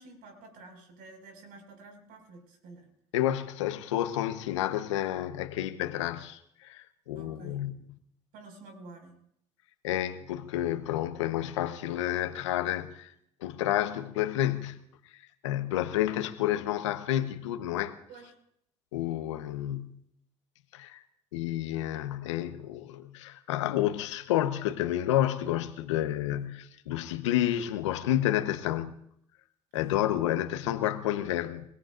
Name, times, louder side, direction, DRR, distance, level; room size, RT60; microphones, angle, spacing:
voice 1, 0.0-2.9 7.1-7.6 8.3-9.2 18.1-18.3 26.3-26.5 29.7-30.1, right 3 dB, 75° right, 4 dB, 5.7 m, -50 dB
voice 2, 3.1-7.7 9.8-13.1 13.4-14.8 15.4-17.9 18.9-20.0 20.7-21.0 21.3-29.0 29.7-31.6, left 12 dB, 90° left, 10 dB, 1.1 m, -30 dB
29.0 x 17.5 x 2.6 m, 0.71 s
hypercardioid pair, 60°, 15 cm